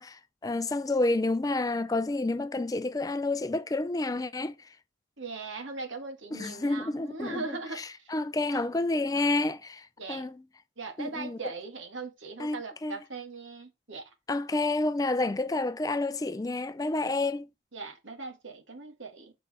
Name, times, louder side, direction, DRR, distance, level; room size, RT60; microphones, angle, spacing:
voice 1, 0.0-4.7 6.3-10.3 11.0-11.5 12.4-13.0 14.3-17.5, left 2 dB, 20° left, 0.3 m, -30 dB
voice 2, 5.2-8.1 8.5-8.7 10.0-10.3 10.8-14.1 17.7-19.3, right 3 dB, 75° right, 2.0 m, -40 dB
7.3 x 5.4 x 4.3 m
head